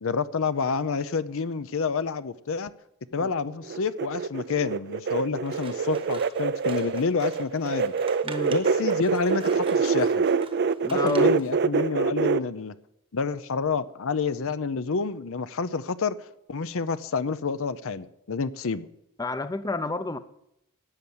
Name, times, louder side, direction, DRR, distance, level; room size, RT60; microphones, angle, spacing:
voice 1, 0.0-2.7 3.1-7.9 8.5-10.3 10.9-12.7 13.1-16.1 16.5-18.9, left 5 dB, 65° left, 0.6 m, -28 dB
sound 1, 3.6-12.4, right 5 dB, 50° right, 0.5 m, -25 dB
Scissors, 5.4-11.5, right 4 dB, 25° right, 1.1 m, -45 dB
voice 2, 8.2-8.6 10.8-11.3 19.2-20.2, left 3 dB, 15° left, 0.6 m, -30 dB
12.5 x 8.6 x 7.9 m
head